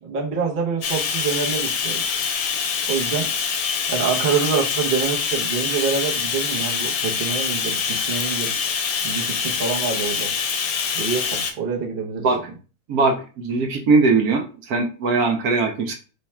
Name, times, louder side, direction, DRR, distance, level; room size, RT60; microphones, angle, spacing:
voice 1, 0.0-2.0 2.9-3.3 3.9-8.6 9.0-10.3 10.9-12.3, right 5 dB, 40° right, -1 dB, 0.8 m, -26 dB
Bathtub (filling or washing), 0.8-11.5, left 6 dB, 70° left, 1.1 m, -25 dB
voice 2, 12.9-15.9, right 3 dB, 70° right, 4 dB, 1.1 m, -20 dB
3.2 x 2.3 x 4.2 m, 0.35 s
omnidirectional pair, 1.7 m